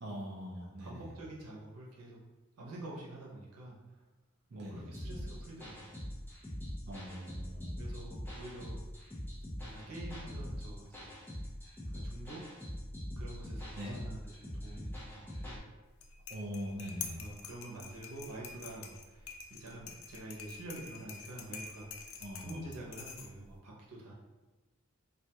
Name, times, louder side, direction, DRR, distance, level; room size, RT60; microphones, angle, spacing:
voice 1, 0.0-1.0 4.5-4.9 6.9-7.8 13.8-14.0 16.3-17.2 22.2-22.7, equal, 50° right, -4 dB, 0.4 m, -42 dB
voice 2, 0.8-2.2 2.6-3.8 4.5-6.0 7.8-8.8 9.6-11.1 11.9-12.4 13.2-15.6 17.1-24.1, right 1 dB, 90° right, -3 dB, 0.7 m, -47 dB
sound 1, 4.9-15.6, equal, 10° left, 0.6 m, -43 dB
sound 2, 15.9-23.6, left 6 dB, 65° left, 0.3 m, -47 dB
2.4 x 2.3 x 2.8 m, 1.2 s
head